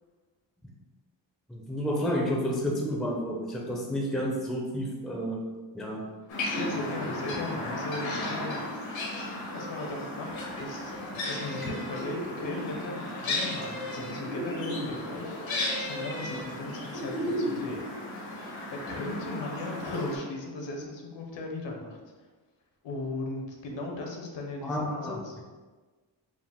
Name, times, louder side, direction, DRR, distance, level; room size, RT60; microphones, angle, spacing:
voice 1, 1.5-5.4 5.7-6.1 11.6-11.7 24.6-25.2, equal, ahead, -1 dB, 0.4 m, -30 dB
sound 1, 6.3-20.2, left 1 dB, 90° left, 1.4 m, -34 dB
voice 2, 6.5-8.6 9.5-15.4 15.7-17.9 18.7-22.0 22.8-25.4, left 2 dB, 70° left, 1 dB, 0.9 m, -37 dB
4.9 x 2.4 x 3.5 m, 1.3 s
wide cardioid pair, 150°, 45 cm